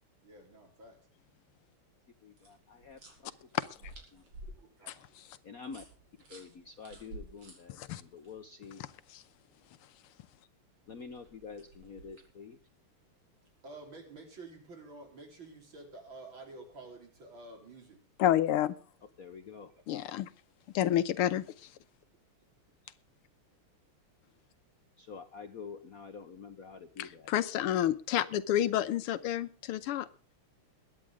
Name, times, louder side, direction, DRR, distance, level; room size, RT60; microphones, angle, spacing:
voice 1, 0.2-1.0 4.6-5.2 13.6-18.0 29.8-29.9, right 2 dB, 60° right, 2 dB, 4.7 m, -50 dB
voice 2, 2.2-3.0 3.4-3.5 4.1-4.2 5.4-5.8 6.3-8.8 10.9-12.6 19.2-19.7 22.8-22.9 25.0-27.3, left 5 dB, 55° left, 8 dB, 1.1 m, -47 dB
sound 1, 2.4-8.3 10.9-12.4, right 1 dB, 80° right, 4.9 m, -52 dB
voice 3, 18.2-18.7 19.9-20.3 20.7-21.4 27.0-30.1, left 11 dB, 85° left, 14 dB, 1.8 m, -29 dB
22.0 x 9.7 x 3.6 m, 0.39 s
omnidirectional pair, 2.4 m